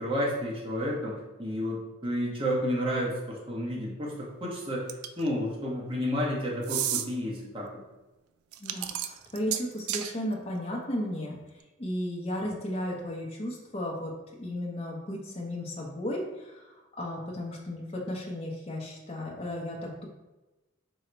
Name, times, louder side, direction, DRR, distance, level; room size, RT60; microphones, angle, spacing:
voice 1, 0.0-7.7 12.5-12.6, equal, 25° right, -4 dB, 0.8 m, -31 dB
sound 1, 4.9-5.3 6.6-7.1 8.5-10.1, right 11 dB, 90° right, 0.3 m, -31 dB
voice 2, 8.6-11.4 11.8-14.1 14.4-16.7 17.0-20.1, left 1 dB, 30° left, -2 dB, 0.6 m, -34 dB
3.8 x 2.1 x 4.3 m, 1.1 s
head